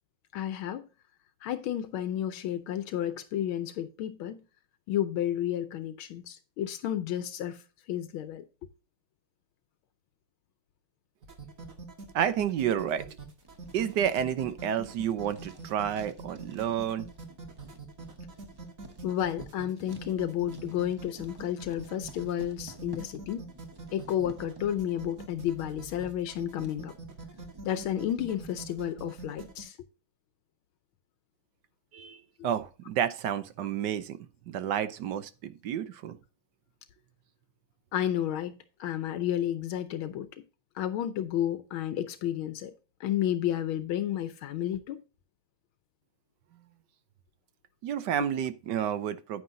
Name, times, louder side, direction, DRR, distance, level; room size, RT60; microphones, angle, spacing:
voice 1, 0.3-0.9 1.4-4.4 4.9-7.6 7.9-8.4 19.0-23.5 23.9-26.9 27.6-29.8 37.9-40.3 40.7-42.7 43.0-45.0, left 11 dB, 80° left, 1.5 m, -31 dB
sound 1, 11.2-29.6, right 3 dB, 45° right, 2.0 m, -44 dB
voice 2, 12.1-13.2 13.7-17.1 31.9-32.2 32.4-34.2 34.5-36.2 47.8-49.4, right 9 dB, 70° right, 1.1 m, -30 dB
Writing, 13.4-27.8, right 1 dB, 20° right, 0.5 m, -54 dB
9.6 x 9.3 x 2.6 m
omnidirectional pair, 2.2 m